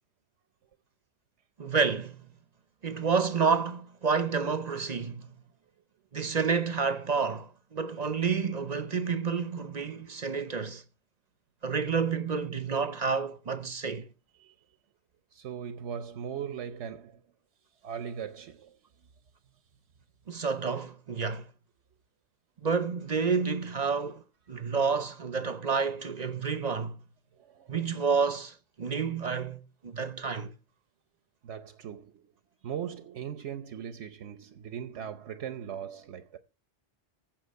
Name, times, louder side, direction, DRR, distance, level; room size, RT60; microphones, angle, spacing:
voice 1, 1.6-2.2 2.8-5.3 6.1-10.8 11.6-14.1 20.3-21.5 22.6-24.2 24.5-27.0 27.7-30.5, right 5 dB, 40° right, 0.8 m, -29 dB
voice 2, 15.3-17.2 17.8-18.8 27.4-27.7 31.4-32.3 32.6-36.4, right 8 dB, 85° right, 1.1 m, -39 dB
15.0 x 6.2 x 7.5 m
omnidirectional pair, 1.1 m